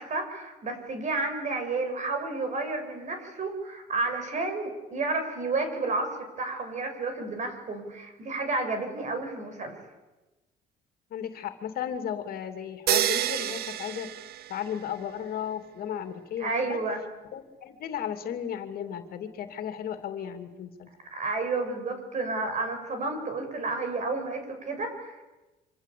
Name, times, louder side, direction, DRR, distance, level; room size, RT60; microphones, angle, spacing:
voice 1, 0.0-9.8 16.4-17.0 21.1-25.3, right 3 dB, 45° right, 7 dB, 7.2 m, -31 dB
voice 2, 11.1-14.1 14.5-16.8 17.3-20.9, left 9 dB, 60° left, 8 dB, 2.8 m, -35 dB
sound 1, 12.9-15.0, right 12 dB, 65° right, 0.9 m, -29 dB
26.5 x 26.0 x 8.6 m, 1.1 s
cardioid pair, 110°, 17 cm